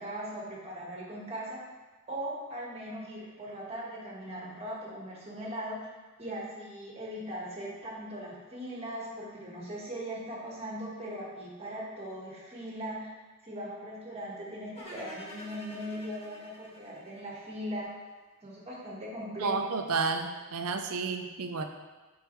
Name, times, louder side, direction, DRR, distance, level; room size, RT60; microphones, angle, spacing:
voice 1, 0.0-1.6 2.1-5.9 6.2-13.1 13.4-17.9 18.4-19.6, equal, 30° right, -4 dB, 1.5 m, -39 dB
sound 1, 14.8-17.9, left 1 dB, 30° left, 1.2 m, -48 dB
voice 2, 19.4-21.6, right 4 dB, 80° right, 6 dB, 0.6 m, -31 dB
8.1 x 4.7 x 3.1 m, 1.3 s
head